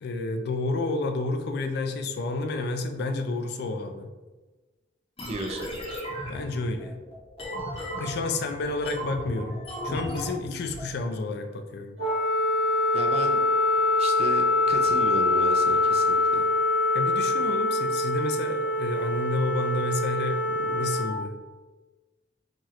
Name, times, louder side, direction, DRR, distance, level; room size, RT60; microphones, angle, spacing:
voice 1, 0.0-4.1 6.3-6.9 8.0-12.0 16.9-21.3, left 2 dB, 60° left, 6 dB, 0.3 m, -30 dB
sound 1, 5.2-10.9, equal, 30° left, 0.7 m, -36 dB
voice 2, 5.3-5.7 12.9-13.4 14.0-16.4, right 2 dB, 35° right, 3 dB, 0.3 m, -34 dB
Wind instrument woodwind instrument, 12.0-21.2, left 2 dB, 90° right, 1.0 m, -24 dB
3.0 x 2.8 x 2.4 m, 1.2 s
head